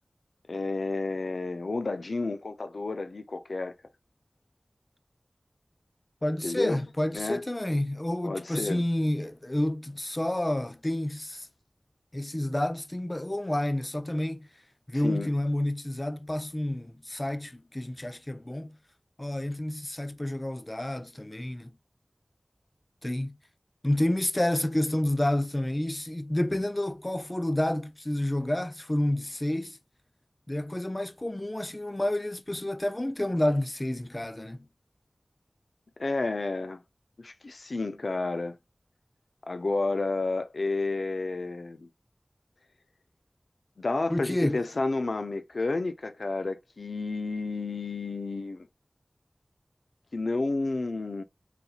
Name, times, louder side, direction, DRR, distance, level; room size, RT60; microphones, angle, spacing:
voice 1, 0.5-3.7 6.4-6.8 7.1-7.4 8.2-8.9 14.9-15.3 36.0-36.8 37.2-38.6 39.5-41.9 43.8-48.7 50.1-51.2, left 3 dB, 85° left, 0.5 m, -31 dB
voice 2, 6.2-11.5 12.1-14.5 14.9-18.7 19.2-21.7 23.0-23.4 23.8-29.8 30.5-34.6 44.1-44.6, left 1 dB, 25° left, 0.5 m, -29 dB
4.2 x 4.1 x 2.4 m
wide cardioid pair, 45°, 0 cm